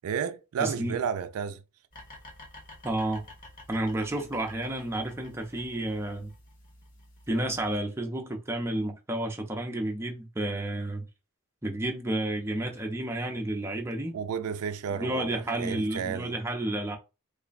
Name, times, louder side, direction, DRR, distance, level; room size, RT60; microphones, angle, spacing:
voice 1, 0.0-1.6 14.1-16.4, right 7 dB, 85° right, 0.4 m, -32 dB
voice 2, 0.6-1.0 2.8-3.2 3.7-6.3 7.3-11.0 11.6-14.2 14.9-17.0, right 1 dB, 10° right, 0.6 m, -31 dB
sound 1, 1.9-7.8, left 1 dB, 40° left, 1.1 m, -50 dB
3.2 x 2.2 x 3.9 m
head